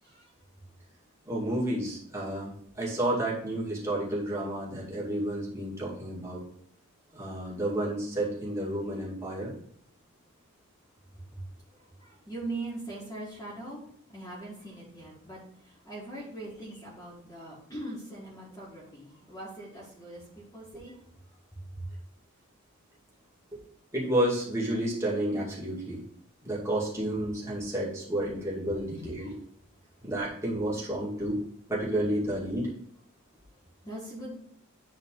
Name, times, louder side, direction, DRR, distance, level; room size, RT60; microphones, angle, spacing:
voice 1, 0.0-0.3 11.1-21.4 21.7-21.9 29.0-29.4 29.9-30.1 33.5-34.3, right 2 dB, 15° left, -7 dB, 1.7 m, -42 dB
voice 2, 1.3-6.4 7.1-9.5 23.5-23.6 23.9-26.0 26.4-29.3 30.0-31.4 31.7-32.7, right 1 dB, 15° right, -6 dB, 2.1 m, -31 dB
9.2 x 4.0 x 3.8 m, 0.64 s
head